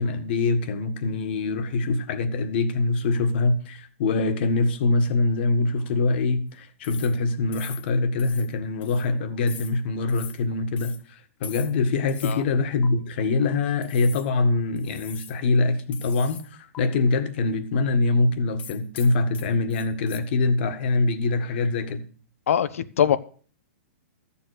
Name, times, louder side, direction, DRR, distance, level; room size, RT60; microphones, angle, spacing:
voice 1, 0.0-22.0, left 3 dB, 50° left, 1.6 m, -24 dB
sound 1, 6.8-7.2 7.5-7.9 8.2-8.5 8.8-9.1 9.5-9.8 10.1-10.4 10.8-11.0 11.4-11.8 12.1-12.4 12.8-12.9 13.8-14.3 14.8-15.4 15.9-16.5 16.7-16.8 18.6-20.2, left 9 dB, 20° left, 0.8 m, -43 dB
voice 2, 22.5-23.2, left 9 dB, 75° left, 1.0 m, -22 dB
13.5 x 7.3 x 6.6 m
hypercardioid pair, 160°, 7 cm